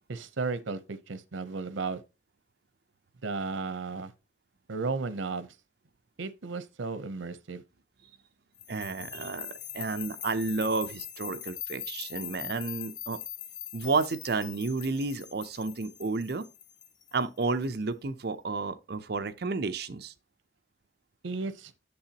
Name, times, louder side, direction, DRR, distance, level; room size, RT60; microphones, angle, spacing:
voice 1, 0.1-2.0 3.2-4.1 4.7-5.5 6.2-7.6 21.2-21.7, right 4 dB, 90° right, 0.8 m, -34 dB
sound 1, 8.6-17.6, left 11 dB, 40° left, 0.7 m, -42 dB
voice 2, 8.7-13.2 13.7-16.4 17.1-20.1, right 3 dB, 55° right, 0.6 m, -31 dB
8.6 x 6.7 x 2.9 m
head